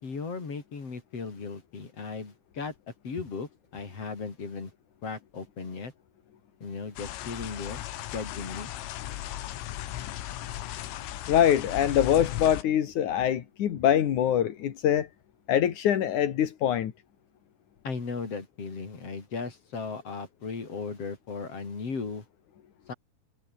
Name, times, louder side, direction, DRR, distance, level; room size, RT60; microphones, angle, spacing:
voice 1, 0.0-2.7 3.0-4.7 5.0-5.9 6.6-7.8 8.1-8.7 17.8-22.2 22.9-23.0, left 4 dB, 30° left, 5.2 m, -36 dB
sound 1, 7.0-12.6, left 13 dB, 85° left, 4.3 m, -36 dB
voice 2, 11.3-15.1 15.5-16.9, left 10 dB, 55° left, 2.3 m, -24 dB
omnidirectional pair, 5.7 m